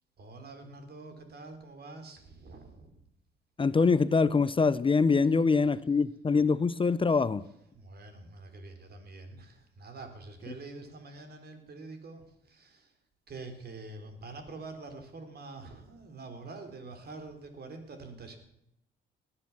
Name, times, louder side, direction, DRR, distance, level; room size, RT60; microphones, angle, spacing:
voice 1, 0.2-2.9 7.7-12.9 13.3-18.4, right 3 dB, 55° right, 6 dB, 3.8 m, -46 dB
voice 2, 3.6-7.4 10.5-10.6, left 4 dB, 25° left, 16 dB, 0.6 m, -24 dB
19.0 x 9.9 x 7.2 m, 0.78 s
cardioid pair, 90°, 20 cm